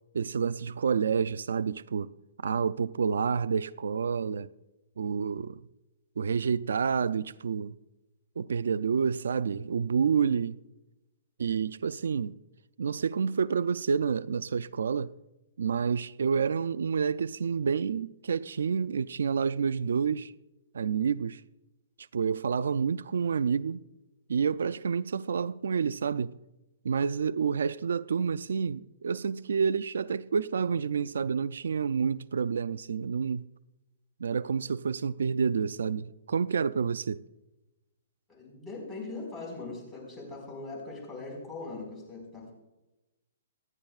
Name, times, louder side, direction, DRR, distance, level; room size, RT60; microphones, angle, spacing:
voice 1, 0.1-2.1 2.4-4.5 5.0-5.6 6.2-7.7 8.4-10.6 11.4-12.4 12.8-15.1 15.6-20.3 20.7-21.4 22.1-23.8 24.3-26.3 26.8-33.5 34.2-37.2, right 6 dB, 85° right, 0.3 m, -29 dB
voice 2, 38.3-42.5, left 3 dB, 5° left, 4.7 m, -40 dB
26.0 x 9.8 x 2.4 m
hypercardioid pair, 160°, 0 cm